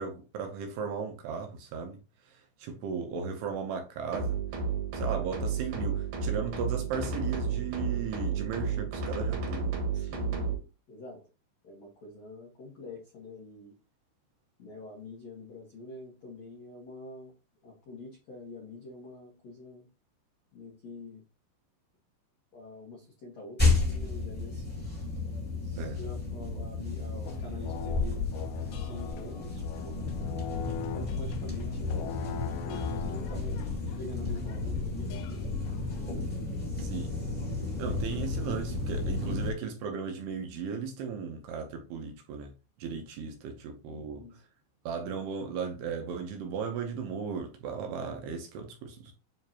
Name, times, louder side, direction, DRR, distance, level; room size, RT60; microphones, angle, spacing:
voice 1, 0.0-2.0 2.3-4.4 4.9-10.1 25.8-26.0 36.8-37.1 37.8-42.5 42.8-44.2 44.9-49.1, right 6 dB, 75° right, 2.6 m, -36 dB
sound 1, 4.1-10.6, right 5 dB, 60° right, 2.2 m, -32 dB
voice 2, 9.9-10.5 10.9-11.2 11.6-13.7 14.6-17.3 17.6-19.9 20.5-21.2 22.5-24.7 25.6-28.2 28.6-30.1 30.9-33.6 34.0-35.5 43.9-44.4, left 2 dB, 65° left, 1.7 m, -46 dB
sound 2, 23.6-39.5, left 3 dB, 5° left, 1.5 m, -32 dB
sound 3, 27.3-36.1, left 9 dB, 80° left, 2.7 m, -43 dB
9.4 x 3.8 x 2.8 m
omnidirectional pair, 5.2 m